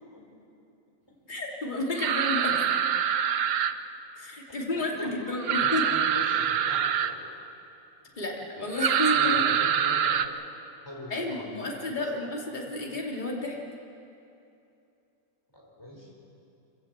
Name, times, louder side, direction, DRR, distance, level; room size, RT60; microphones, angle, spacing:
voice 1, 1.3-2.5 4.2-5.8 8.2-9.6 11.1-13.6, left 2 dB, 30° left, -2 dB, 2.8 m, -31 dB
sound 1, 1.9-3.7 5.4-7.1 8.7-10.3, right 8 dB, 90° right, 1.3 m, -25 dB
voice 2, 4.7-7.2 8.2-8.3 8.7-8.8 9.1-10.4 10.9-12.0 15.5-16.1, left 1 dB, 15° left, -3 dB, 5.3 m, -42 dB
25.5 x 16.5 x 8.1 m, 2.7 s
omnidirectional pair, 1.5 m